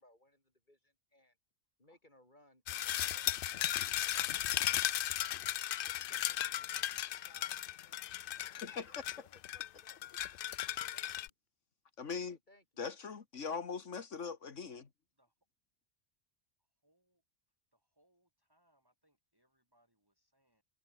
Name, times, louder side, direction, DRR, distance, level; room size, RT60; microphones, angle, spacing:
voice 1, 0.0-1.4 1.8-3.7 4.1-4.4 5.8-6.8 7.2-7.6 7.8-10.0 10.9-11.3 12.5-12.8, left 1 dB, 40° left, 7.8 m, -66 dB
sound 1, 2.7-11.3, left 12 dB, 60° left, 0.6 m, -36 dB
voice 2, 8.6-8.9 12.0-12.4 12.8-14.9, left 5 dB, 90° left, 2.1 m, -41 dB
voice 3, 16.8-17.2 17.7-20.6, right 1 dB, 20° right, 6.3 m, -74 dB
omnidirectional pair, 1.2 m